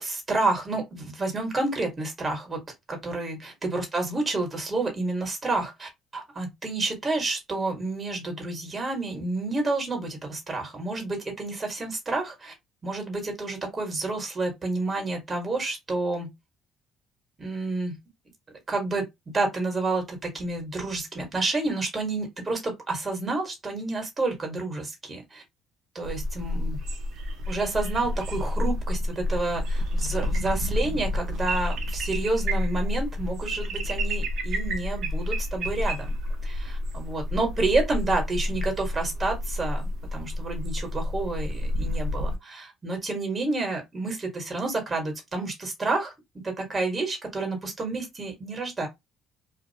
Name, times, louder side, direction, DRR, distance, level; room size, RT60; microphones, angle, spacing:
voice 1, 0.0-2.6 2.9-12.5 12.8-16.3 17.4-18.0 18.7-25.4 25.9-26.8 27.5-36.1 36.4-46.1 46.4-48.9, right 2 dB, 25° right, 1.2 m, -29 dB
sound 1, 26.0-42.4, left 1 dB, 70° right, 0.7 m, -29 dB
2.6 x 2.4 x 2.7 m
cardioid pair, 95°, 0 cm